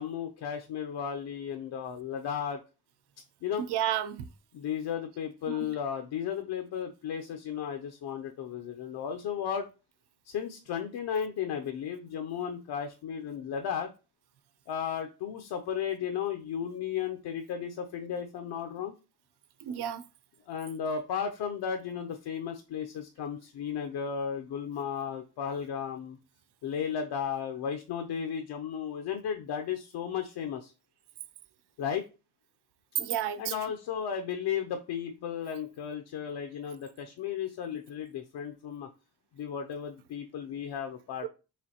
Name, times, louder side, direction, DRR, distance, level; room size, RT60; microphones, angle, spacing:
voice 1, 0.0-2.6 3.4-3.6 4.5-9.7 10.3-13.9 14.7-18.9 20.5-26.2 26.6-30.7 31.8-32.0 33.4-38.9 39.4-41.3, left 8 dB, 75° left, 0.6 m, -34 dB
voice 2, 3.6-4.3 5.5-5.7 19.6-20.0 33.0-33.5 41.2-41.3, right 11 dB, 75° right, 0.6 m, -31 dB
4.9 x 3.4 x 2.9 m
wide cardioid pair, 150°, 40 cm